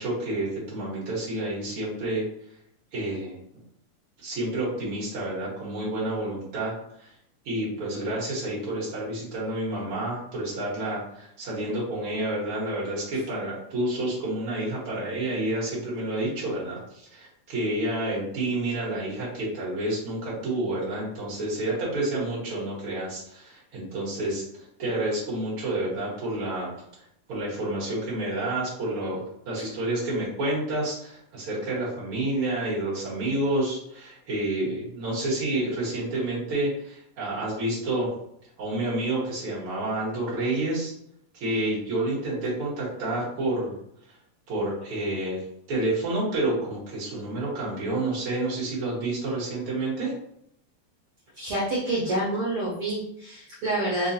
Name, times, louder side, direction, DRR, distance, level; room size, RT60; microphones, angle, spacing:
voice 1, 0.0-2.2 2.9-3.4 4.2-7.1 7.4-26.7 27.3-38.1 38.6-40.9 41.3-43.8 44.5-45.4 45.7-50.1, right 1 dB, 55° right, -7 dB, 1.8 m, -29 dB
voice 2, 51.4-54.1, right 1 dB, 80° right, -6 dB, 1.2 m, -27 dB
4.8 x 2.3 x 2.6 m, 0.74 s
omnidirectional pair, 3.6 m